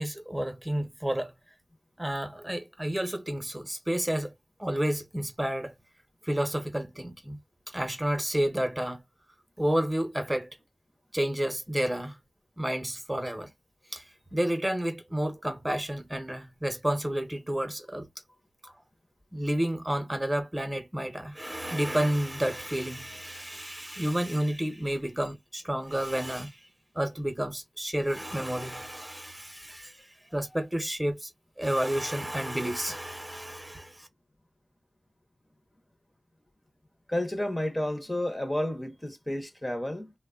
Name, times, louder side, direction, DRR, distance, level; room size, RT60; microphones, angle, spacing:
voice 1, 0.0-1.3 2.0-4.3 4.6-5.8 6.2-7.4 7.7-9.0 9.6-10.6 11.1-12.1 12.6-13.5 13.9-14.0 14.3-18.1 18.6-18.7 19.3-26.6 26.9-31.3 31.6-34.1, right 1 dB, 15° right, 0.9 m, -30 dB
voice 2, 37.1-40.1, left 1 dB, 20° left, 0.8 m, -31 dB
3.2 x 2.2 x 2.3 m
wide cardioid pair, 70°, 0 cm